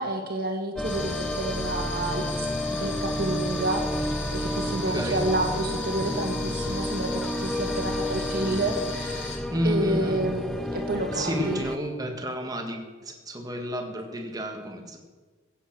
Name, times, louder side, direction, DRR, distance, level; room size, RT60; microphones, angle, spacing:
voice 1, 0.0-2.5 2.8-11.6, right 1 dB, 45° right, 3 dB, 2.0 m, -29 dB
sound 1, 0.8-9.4, left 4 dB, 60° left, 2.0 m, -38 dB
sound 2, 0.8-11.8, left 1 dB, ahead, 0.4 m, -31 dB
voice 2, 4.8-5.2 9.5-10.2 11.1-15.0, equal, 20° right, 3 dB, 1.5 m, -31 dB
15.5 x 8.2 x 6.0 m, 1.4 s
head